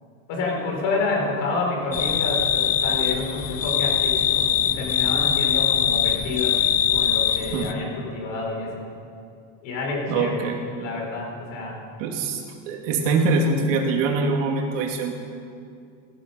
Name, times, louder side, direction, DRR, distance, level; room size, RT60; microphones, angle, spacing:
voice 1, 0.3-6.6 6.9-8.8 9.6-10.4 10.7-11.8 12.9-13.0, left 3 dB, 55° left, 0 dB, 4.2 m, -28 dB
sound 1, 1.9-7.7, left 9 dB, 25° left, 0.5 m, -22 dB
voice 2, 10.1-10.6 12.0-15.1, right 3 dB, 80° right, 1 dB, 2.5 m, -23 dB
15.0 x 14.5 x 5.7 m, 2.4 s
cardioid pair, 155°, 38 cm